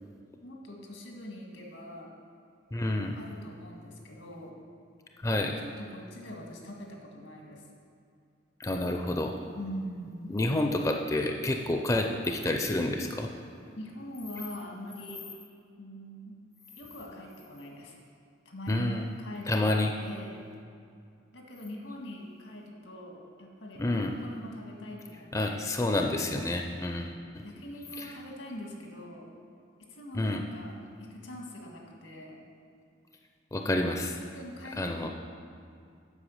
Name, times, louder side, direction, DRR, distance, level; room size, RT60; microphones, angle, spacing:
voice 1, 0.4-2.1 3.1-4.5 5.6-7.6 9.6-10.3 13.8-15.3 15.8-16.4 16.8-18.0 18.5-20.5 21.3-25.8 27.4-29.3 29.8-32.4 34.3-35.1, equal, 85° left, 0 dB, 1.7 m, -43 dB
voice 2, 2.7-3.2 5.2-5.6 8.6-9.3 10.3-13.3 18.7-19.0 19.5-19.9 23.8-24.1 25.3-27.4 28.0-28.1 30.1-30.4 33.5-34.2 34.8-35.1, left 2 dB, 15° left, 3 dB, 0.4 m, -29 dB
8.2 x 5.6 x 7.1 m, 2.4 s
head